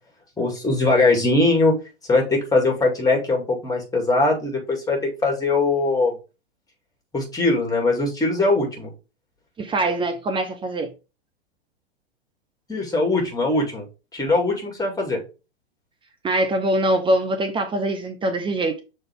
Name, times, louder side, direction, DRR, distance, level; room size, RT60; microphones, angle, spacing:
voice 1, 0.4-1.7 2.1-6.2 7.1-8.9 12.7-13.8 14.1-15.2, left 2 dB, 10° left, 2.5 m, -21 dB
voice 2, 9.6-10.9 16.2-18.8, right 1 dB, 15° right, 0.8 m, -23 dB
6.5 x 4.2 x 3.6 m
hypercardioid pair, 105°, 33 cm